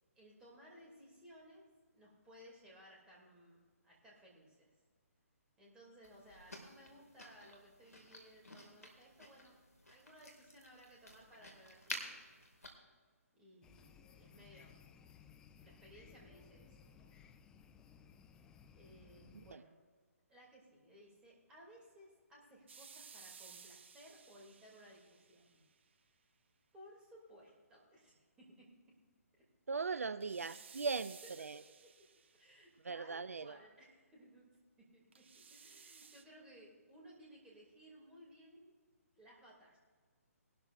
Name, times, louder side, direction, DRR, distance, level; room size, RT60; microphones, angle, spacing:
voice 1, 0.2-1.7 1.9-4.7 5.6-9.6 9.8-12.2 13.3-14.8 15.6-17.2 18.7-19.7 20.3-25.6 26.7-28.7 29.9-30.0 30.4-30.8 31.5-31.9 32.3-34.4 34.8-38.7 39.1-39.8, equal, 10° right, -4 dB, 2.6 m, -60 dB
sound 1, 6.0-12.7, left 1 dB, 75° left, 2.3 m, -51 dB
sound 2, 13.6-19.5, left 7 dB, 10° left, 0.3 m, -61 dB
sound 3, 22.7-25.7 30.2-32.8 35.1-36.2, right 6 dB, 50° right, 0.8 m, -57 dB
voice 2, 29.7-31.6 32.8-33.6, right 4 dB, 70° right, 15 dB, 0.4 m, -39 dB
19.0 x 12.0 x 2.6 m, 1.6 s
figure-of-eight pair, 135°, 8 cm